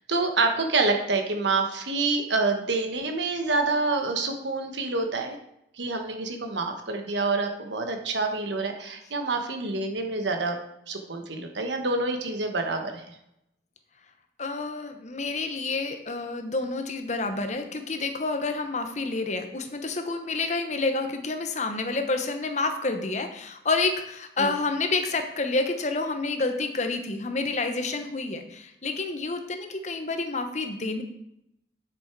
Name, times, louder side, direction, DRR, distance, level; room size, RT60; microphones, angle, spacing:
voice 1, 0.1-5.4 5.8-10.6 10.9-13.2 24.4-24.5, right 3 dB, 70° right, 4 dB, 1.2 m, -27 dB
voice 2, 14.4-31.0, left 3 dB, 40° left, 6 dB, 0.9 m, -29 dB
8.1 x 6.3 x 4.7 m, 0.80 s
head